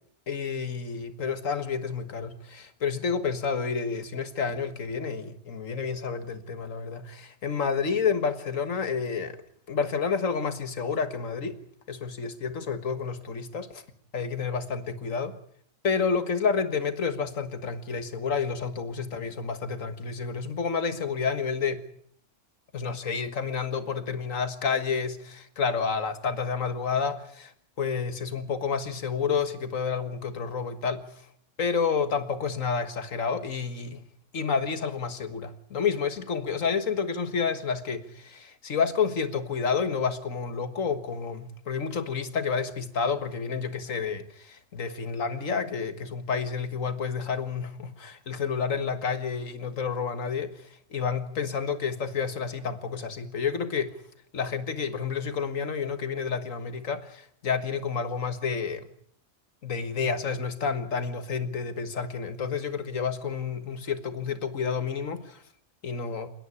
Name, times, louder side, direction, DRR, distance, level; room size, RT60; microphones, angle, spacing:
voice 1, 0.3-9.4 9.7-11.6 11.9-13.8 14.1-15.4 15.8-21.8 22.7-27.5 27.8-31.2 31.6-34.0 34.3-53.9 54.3-58.9 59.6-65.4 65.8-66.3, left 5 dB, 85° left, 10 dB, 1.9 m, -30 dB
28.0 x 10.0 x 9.8 m, 0.67 s
omnidirectional pair, 1.3 m